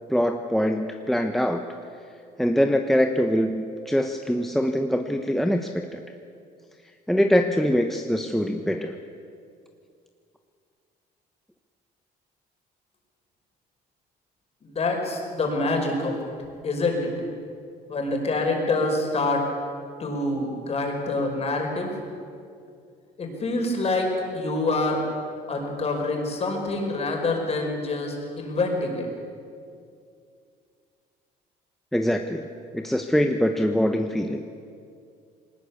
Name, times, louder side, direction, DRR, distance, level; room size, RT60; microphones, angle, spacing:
voice 1, 0.1-1.6 2.4-6.0 7.1-9.0 31.9-32.5 32.7-34.4, equal, ahead, 5 dB, 0.9 m, -23 dB
voice 2, 14.6-16.3 16.6-17.1 17.9-19.5 20.0-21.9 23.2-25.0 25.5-29.1, left 2 dB, 40° left, 2 dB, 5.2 m, -26 dB
21.0 x 19.0 x 8.4 m, 2.4 s
cardioid pair, 110°, 17 cm